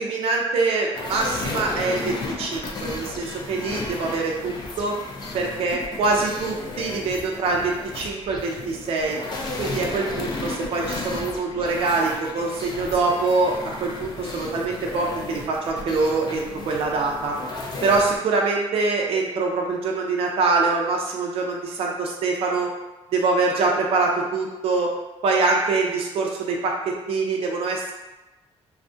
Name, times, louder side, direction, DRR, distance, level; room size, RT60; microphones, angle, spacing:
voice 1, 0.0-4.9 5.3-9.2 9.6-13.5 13.8-17.3 17.8-22.7 23.1-24.9 25.2-27.9, right 3 dB, 60° right, -1 dB, 0.4 m, -24 dB
sound 1, 0.9-18.2, left 3 dB, 40° left, 0.3 m, -34 dB
2.3 x 2.1 x 2.5 m, 1.1 s
cardioid pair, 165°, 11 cm